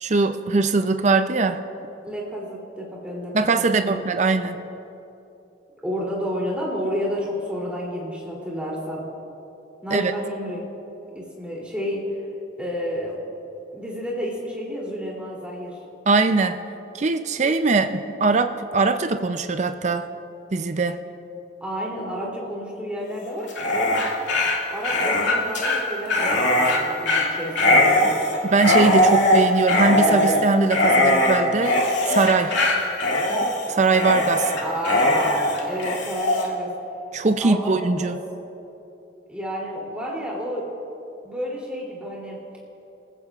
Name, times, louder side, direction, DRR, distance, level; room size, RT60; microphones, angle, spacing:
voice 1, 0.0-1.6 3.3-4.6 9.9-10.1 16.1-16.6 16.9-20.1 20.5-21.0 28.5-32.5 33.7-34.5 37.1-38.2, right 3 dB, 35° right, 8 dB, 0.5 m, -21 dB
voice 2, 2.0-3.5 3.8-4.0 5.8-9.0 9.8-10.6 11.1-12.0 12.6-13.1 13.7-15.8 21.6-24.0 24.7-28.2 34.6-36.7 37.4-37.7 38.0-38.1 39.3-40.7 41.2-42.4, equal, 5° right, -5 dB, 3.0 m, -30 dB
Dog, 23.4-36.5, left 1 dB, 70° left, 2.4 m, -20 dB
29.0 x 15.0 x 2.4 m, 2.9 s
head